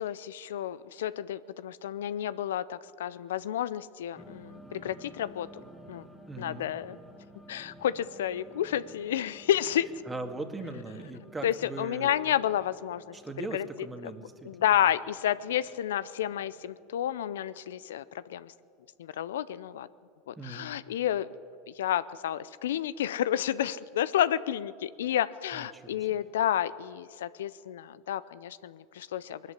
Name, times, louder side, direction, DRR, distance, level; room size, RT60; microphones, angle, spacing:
voice 1, 0.0-5.5 5.9-6.1 6.4-7.0 7.5-9.9 11.4-13.1 13.5-13.7 14.4-18.5 19.0-19.9 20.3-21.3 21.7-29.4, left 11 dB, 80° left, 16 dB, 0.5 m, -30 dB
sound 1, 4.1-18.1, right 1 dB, ahead, 2.0 m, -54 dB
voice 2, 6.3-6.7 10.1-12.1 13.1-14.5 20.4-20.8 25.5-26.2, right 2 dB, 15° right, 7 dB, 2.0 m, -40 dB
20.0 x 13.5 x 10.0 m, 2.3 s
hypercardioid pair, 95°, 0 cm